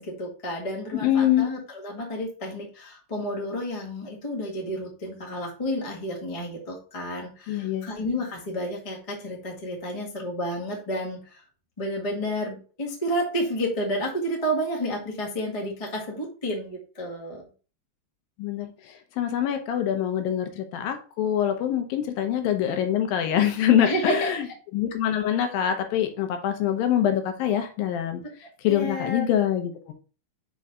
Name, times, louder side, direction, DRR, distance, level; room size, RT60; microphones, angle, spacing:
voice 1, 0.0-11.4 11.8-17.4 23.8-24.3 28.6-29.3, equal, 25° left, -1 dB, 0.7 m, -31 dB
voice 2, 1.0-1.5 7.5-7.9 18.4-18.7 19.2-24.4 24.7-28.2 28.6-29.9, left 10 dB, 85° left, 6 dB, 2.8 m, -24 dB
5.7 x 5.4 x 3.7 m, 0.37 s
omnidirectional pair, 4.0 m